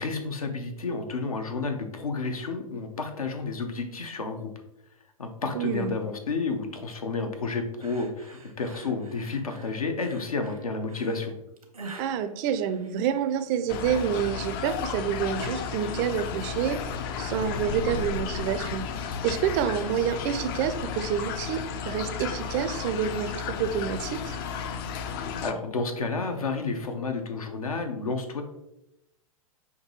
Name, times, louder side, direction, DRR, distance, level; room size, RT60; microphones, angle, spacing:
voice 1, 0.0-4.5 5.2-11.3 25.4-28.4, left 3 dB, 80° left, 5 dB, 0.7 m, -31 dB
voice 2, 5.5-5.9 12.0-16.8 17.2-18.9 19.2-24.4, right 8 dB, 35° right, 10 dB, 0.4 m, -28 dB
sound 1, 7.8-13.3, right 3 dB, 90° right, 0.8 m, -46 dB
sound 2, 13.7-25.5, left 7 dB, 40° left, 0.4 m, -33 dB
5.9 x 2.7 x 2.9 m, 0.87 s
figure-of-eight pair, 105°, 18 cm